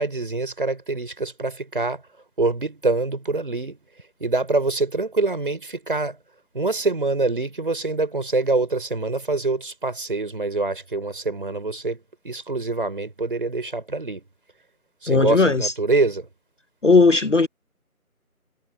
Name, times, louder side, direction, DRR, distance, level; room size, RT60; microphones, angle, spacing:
voice 1, 0.0-2.0 2.4-3.8 4.2-6.2 6.5-12.0 12.2-14.2 15.0-16.3, right 3 dB, 35° right, 4.8 m, -25 dB
voice 2, 15.1-15.7 16.8-17.5, left 3 dB, 55° left, 1.0 m, -17 dB
figure-of-eight pair, 170°, 44 cm